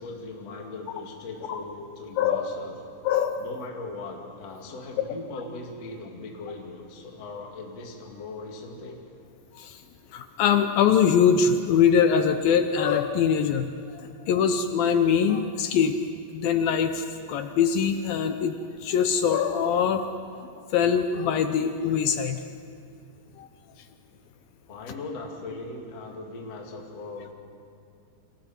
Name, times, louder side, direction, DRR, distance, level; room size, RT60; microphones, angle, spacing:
voice 1, 0.0-2.8 3.4-9.0 24.7-27.3, left 3 dB, 40° left, 0 dB, 2.9 m, -39 dB
voice 2, 3.0-3.4 9.6-9.8 10.1-13.7 13.9-16.0 16.3-18.5 18.8-20.1 20.7-22.4 23.4-23.5, left 7 dB, 80° left, 7 dB, 2.1 m, -23 dB
29.5 x 27.0 x 4.5 m, 2.3 s
omnidirectional pair, 5.2 m